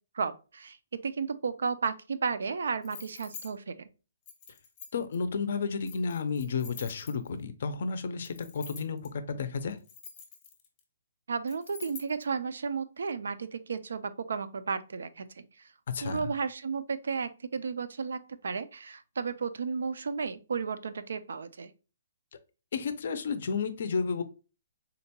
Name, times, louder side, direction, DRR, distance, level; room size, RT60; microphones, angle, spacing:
voice 1, 0.2-0.8 1.0-3.9 11.3-15.4 16.0-21.7, right 5 dB, 75° right, 0.4 m, -33 dB
sound 1, 2.8-3.5 4.3-5.2 5.8-7.4 8.2-9.1 9.7-10.8 11.5-12.2, left 6 dB, 20° left, 0.7 m, -47 dB
voice 2, 4.9-9.8 15.9-16.3 22.7-24.2, left 5 dB, 55° left, 0.4 m, -32 dB
3.7 x 2.2 x 2.8 m
hypercardioid pair, 165°, 0 cm